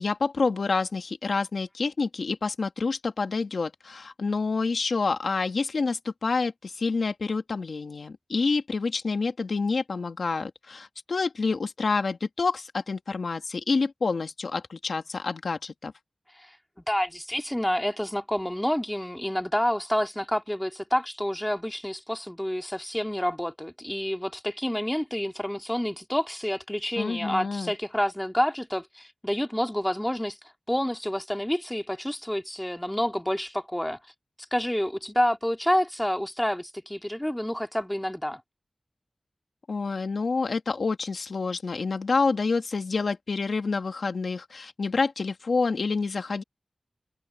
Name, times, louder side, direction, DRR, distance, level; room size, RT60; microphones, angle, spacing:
voice 1, 0.0-15.9 27.0-27.7 39.7-46.4, left 4 dB, 85° left, 2.0 m, -28 dB
voice 2, 16.9-30.4 30.7-34.0 34.5-38.4, equal, 10° left, 2.7 m, -28 dB
cardioid pair, 45°, 0 cm